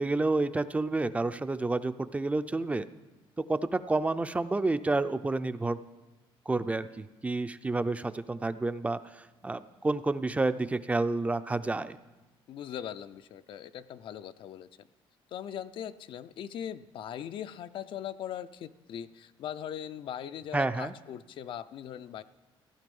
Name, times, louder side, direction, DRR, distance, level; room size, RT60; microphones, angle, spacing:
voice 1, 0.0-2.9 3.4-5.8 6.5-12.0 20.5-20.9, right 2 dB, 15° right, 12 dB, 0.5 m, -29 dB
voice 2, 12.5-14.7 15.3-22.2, left 9 dB, 60° left, 13 dB, 0.5 m, -40 dB
15.0 x 11.0 x 5.4 m, 1.1 s
cardioid pair, 125°, 10 cm